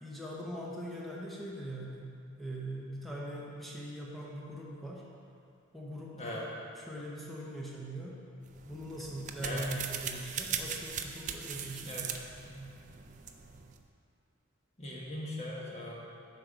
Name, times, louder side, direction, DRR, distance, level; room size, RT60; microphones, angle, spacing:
voice 1, 0.0-5.0 5.7-6.5 6.7-8.2 8.6-12.1 12.4-12.7, equal, ahead, -4 dB, 0.8 m, -41 dB
sound 1, 8.5-13.8, right 7 dB, 35° right, 0.4 m, -40 dB
voice 2, 14.8-15.9, left 1 dB, 30° left, -4 dB, 1.3 m, -39 dB
8.0 x 4.7 x 5.2 m, 2.5 s
head